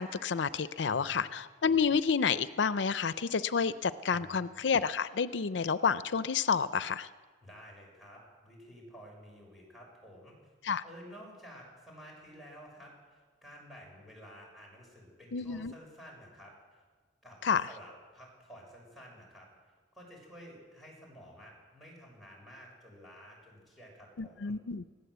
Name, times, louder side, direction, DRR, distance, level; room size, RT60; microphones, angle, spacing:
voice 1, 0.0-7.1 10.6-10.8 15.3-15.7 17.4-17.7 24.2-24.8, left 6 dB, 80° left, 14 dB, 0.6 m, -30 dB
voice 2, 0.8-1.3 4.1-4.4 7.4-10.4 10.8-16.8 17.2-17.4 17.7-19.5 19.9-24.5, equal, ahead, -2 dB, 6.8 m, -52 dB
20.5 x 16.0 x 8.0 m, 1.5 s
head